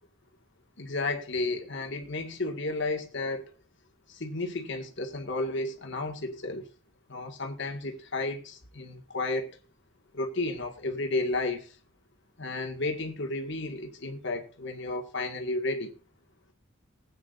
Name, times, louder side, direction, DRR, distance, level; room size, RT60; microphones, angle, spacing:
voice 1, 0.8-3.5 4.1-6.7 7.1-9.6 10.1-11.8 12.4-15.9, left 2 dB, 60° left, 1.9 m, -32 dB
20.0 x 8.8 x 2.6 m
head